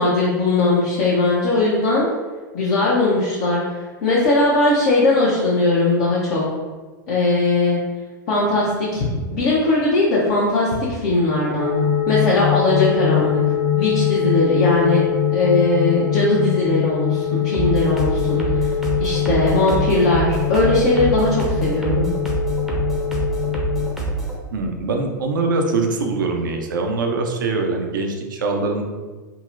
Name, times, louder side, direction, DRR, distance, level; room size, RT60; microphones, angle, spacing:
voice 1, 0.0-2.1 2.5-3.6 4.0-6.4 7.1-7.8 8.3-11.8 12.1-13.4 13.7-15.0 15.3-18.6 19.0-22.1, left 2 dB, 50° left, -6 dB, 0.7 m, -19 dB
sound 1, 11.6-23.9, left 9 dB, 75° left, 1.3 m, -22 dB
sound 2, 17.5-24.4, right 3 dB, ahead, 0.6 m, -25 dB
voice 2, 24.5-28.8, right 3 dB, 75° right, 3 dB, 0.5 m, -23 dB
3.7 x 2.0 x 2.5 m, 1.3 s
hypercardioid pair, 95°, 11 cm